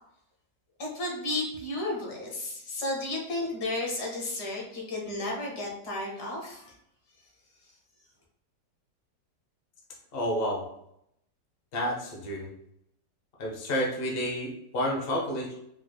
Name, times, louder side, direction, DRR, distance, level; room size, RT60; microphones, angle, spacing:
voice 1, 0.8-6.7, left 2 dB, 65° left, -2 dB, 1.5 m, -33 dB
voice 2, 10.1-10.7 11.7-12.5 13.4-15.5, equal, 40° left, -2 dB, 0.9 m, -30 dB
4.8 x 3.2 x 2.2 m, 0.76 s
omnidirectional pair, 2.0 m